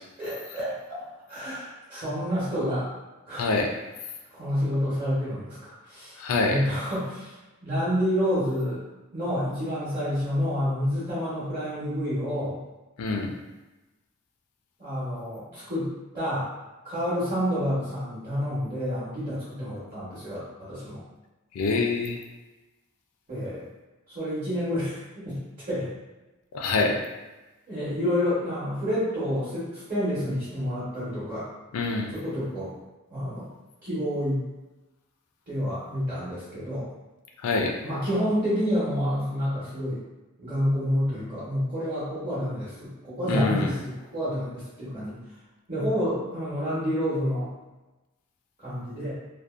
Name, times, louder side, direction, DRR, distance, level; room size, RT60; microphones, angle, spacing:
voice 1, 0.2-1.0 1.3-2.9 3.3-3.4 4.3-6.2 6.5-7.4 7.6-8.8 9.1-12.6 14.8-16.5 16.8-21.0 23.3-23.6 24.1-25.4 25.7-25.9 27.7-31.5 32.1-32.7 33.1-33.5 33.8-34.4 35.5-36.9 37.8-40.0 40.4-45.2 45.7-47.5 48.6-49.1, equal, 35° right, -12 dB, 1.0 m, -29 dB
voice 2, 3.4-3.7 6.2-6.6 13.0-13.4 21.5-22.2 26.5-27.0 31.7-32.1 37.4-37.8 43.3-43.7, left 3 dB, 85° left, 2 dB, 0.4 m, -25 dB
2.6 x 2.1 x 2.4 m, 1.1 s
head